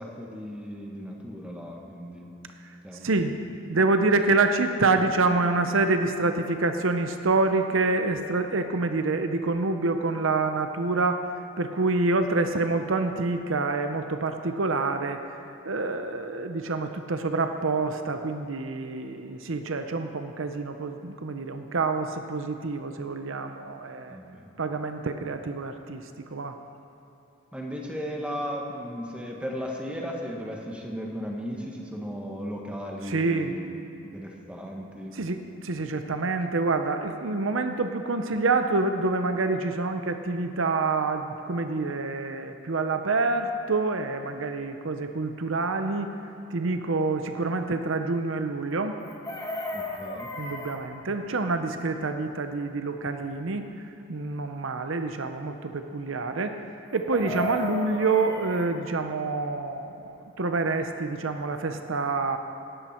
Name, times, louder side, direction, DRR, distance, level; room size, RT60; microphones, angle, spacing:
voice 1, 0.0-2.3 2.8-3.3 24.1-24.5 27.5-33.7 34.1-35.1 49.7-50.3 57.2-57.3, equal, 5° right, -1 dB, 1.5 m, -36 dB
voice 2, 3.0-3.4 3.7-11.2 11.6-15.2 15.7-24.2 24.6-26.6 33.0-33.5 35.1-46.1 46.5-48.9 50.4-56.5 56.9-62.4, right 3 dB, 65° right, 7 dB, 0.7 m, -27 dB
Chicken rooster, 49.0-50.8 56.9-58.7 60.9-61.0 61.3-61.6, left 1 dB, 15° left, 1.4 m, -35 dB
18.0 x 13.5 x 4.4 m, 3.0 s
head